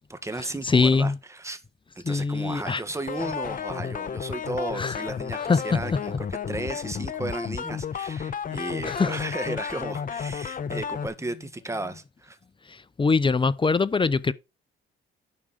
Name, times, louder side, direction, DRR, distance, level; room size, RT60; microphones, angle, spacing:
voice 1, 0.1-1.6 2.0-12.4, right 2 dB, 15° right, 1.9 m, -34 dB
voice 2, 0.6-1.1 2.0-2.8 4.8-4.9 5.5-5.6 8.9-9.1 13.0-14.3, left 4 dB, 25° left, 0.7 m, -22 dB
sound 1, 3.1-11.1, left 7 dB, 45° left, 1.0 m, -32 dB
11.5 x 4.9 x 6.3 m
cardioid pair, 90°, 20 cm